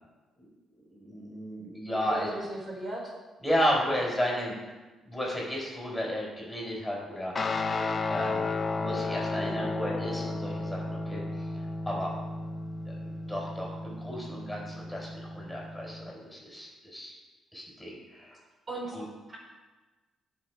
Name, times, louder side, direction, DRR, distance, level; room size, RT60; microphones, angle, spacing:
voice 1, 0.9-2.3 3.4-4.5 5.0-7.3 8.1-8.5 8.7-11.2 11.9-12.1 12.9-17.2 17.5-18.4 18.9-19.0, equal, 5° left, -3 dB, 5.0 m, -33 dB
voice 2, 2.0-3.1 9.3-9.8 18.7-19.0 19.3-19.4, right 1 dB, 35° right, -3 dB, 5.0 m, -37 dB
Guitar, 7.4-16.1, left 3 dB, 35° left, 1.3 m, -33 dB
19.0 x 6.7 x 4.9 m, 1.2 s
cardioid pair, 90°, 0 cm